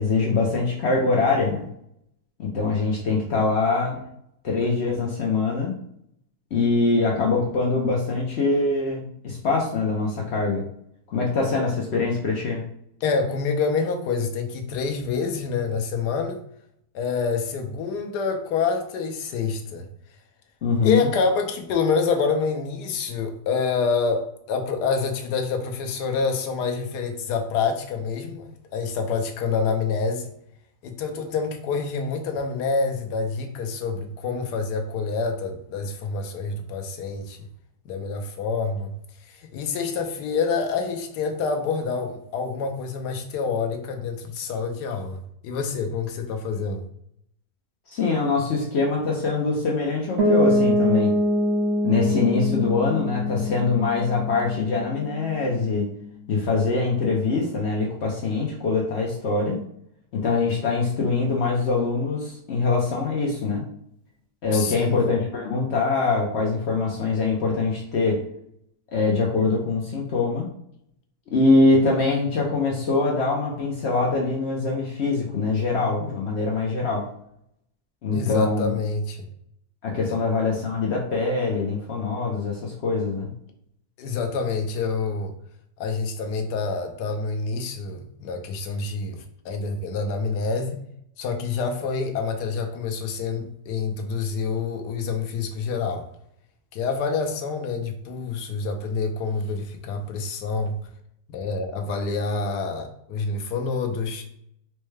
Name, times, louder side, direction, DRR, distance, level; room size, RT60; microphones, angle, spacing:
voice 1, 0.0-1.6 2.4-4.0 4.4-5.7 6.5-10.6 11.1-12.6 20.6-21.1 47.9-51.1 51.8-55.9 56.3-59.6 60.1-63.6 64.4-68.2 68.9-70.5 71.3-77.1 78.0-78.8 79.8-83.3, left 3 dB, 65° left, -1 dB, 0.6 m, -23 dB
voice 2, 13.0-16.4 16.9-19.9 20.8-30.3 30.8-37.5 37.8-38.9 39.3-46.9 64.5-65.0 78.1-79.3 80.1-80.2 84.0-85.3 85.8-90.8 91.2-96.1 96.7-100.8 101.3-104.2, left 4 dB, 80° left, 5 dB, 1.2 m, -27 dB
Piano, 50.2-55.9, left 1 dB, 50° right, 0.8 m, -24 dB
4.4 x 2.1 x 3.2 m, 0.72 s
omnidirectional pair, 1.8 m